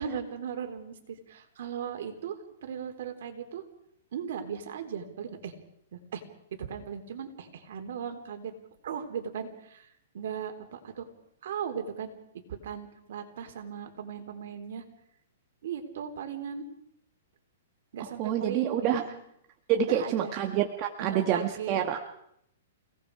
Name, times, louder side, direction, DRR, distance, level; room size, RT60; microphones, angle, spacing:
voice 1, 0.0-3.6 4.1-5.5 5.9-6.2 6.6-8.5 8.8-9.9 10.1-11.1 11.4-12.1 12.5-14.8 15.6-16.7 17.9-19.2 19.8-20.3 21.0-21.8, right 7 dB, 65° right, 5 dB, 3.9 m, -37 dB
voice 2, 18.2-19.0 19.7-22.0, right 9 dB, 30° right, 3 dB, 1.6 m, -27 dB
29.5 x 18.5 x 4.9 m, 0.74 s
hypercardioid pair, 155°, 0 cm